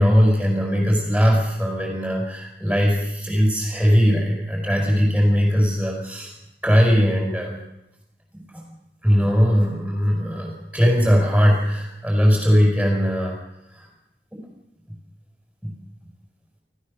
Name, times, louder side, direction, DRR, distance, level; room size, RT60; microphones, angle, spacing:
voice 1, 0.0-6.3 6.6-7.6 9.0-13.4 13.7-13.9 14.3-14.5 15.6-15.7, equal, ahead, -1 dB, 5.4 m, -19 dB
29.0 x 16.0 x 6.5 m, 0.87 s
head